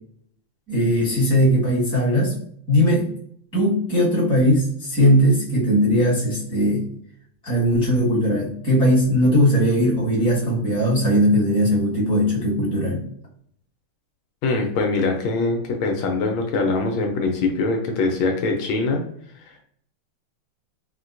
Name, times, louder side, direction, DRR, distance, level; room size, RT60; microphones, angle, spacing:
voice 1, 0.7-2.3 2.7-3.1 3.5-6.8 7.4-13.0, equal, 5° left, -8 dB, 1.0 m, -19 dB
voice 2, 14.4-19.0 19.4-19.6, left 3 dB, 75° left, 2 dB, 1.4 m, -23 dB
4.3 x 2.1 x 2.5 m, 0.64 s
omnidirectional pair, 2.4 m